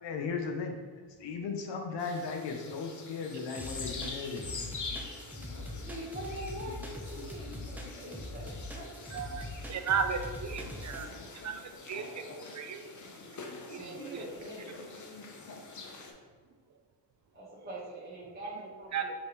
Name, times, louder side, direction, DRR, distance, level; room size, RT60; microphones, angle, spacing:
voice 1, 0.0-0.7 1.2-4.4, left 5 dB, 75° left, 3 dB, 0.8 m, -36 dB
sound 1, 2.0-16.1, left 4 dB, 45° left, 0.8 m, -45 dB
sound 2, 3.5-11.0, left 1 dB, 5° right, 0.7 m, -42 dB
voice 2, 5.7-9.1 13.7-14.9 17.3-19.1, right 1 dB, 25° right, -8 dB, 1.3 m, -44 dB
voice 3, 9.1-11.1 11.4-11.6 11.9-12.8 13.7-14.0 18.9-19.0, right 6 dB, 40° right, 7 dB, 0.5 m, -34 dB
5.0 x 3.4 x 3.1 m, 1.5 s
cardioid pair, 65°, 43 cm